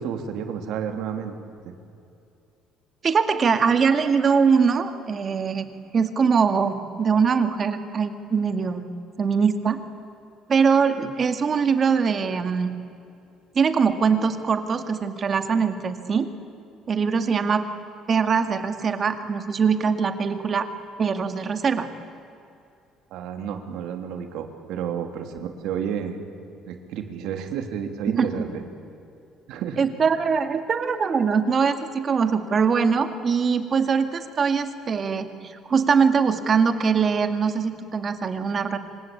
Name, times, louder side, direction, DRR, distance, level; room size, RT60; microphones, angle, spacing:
voice 1, 0.0-1.4 1.6-1.7 23.1-26.2 26.7-28.6 29.5-29.8, right 8 dB, 70° right, 5 dB, 3.2 m, -31 dB
voice 2, 3.0-8.9 9.2-9.8 10.5-12.8 13.6-16.3 16.9-17.6 18.1-20.7 21.0-21.9 28.2-28.3 29.8-38.8, right 6 dB, 30° right, 8 dB, 2.0 m, -22 dB
26.5 x 25.5 x 8.7 m, 2.6 s
cardioid pair, 150°, 0 cm